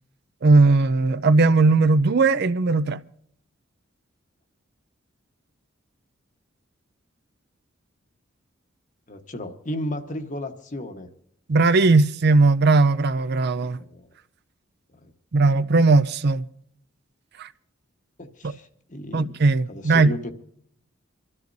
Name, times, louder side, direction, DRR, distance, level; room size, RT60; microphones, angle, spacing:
voice 1, 0.4-3.0 11.5-13.8 15.3-16.4 17.4-17.5 18.4-18.5 19.1-20.1, right 3 dB, 55° right, 0.5 m, -18 dB
voice 2, 9.1-11.1 13.6-14.1 14.9-15.1 18.2-19.3 19.7-20.3, left 1 dB, 40° left, 1.3 m, -34 dB
26.5 x 13.0 x 2.7 m
head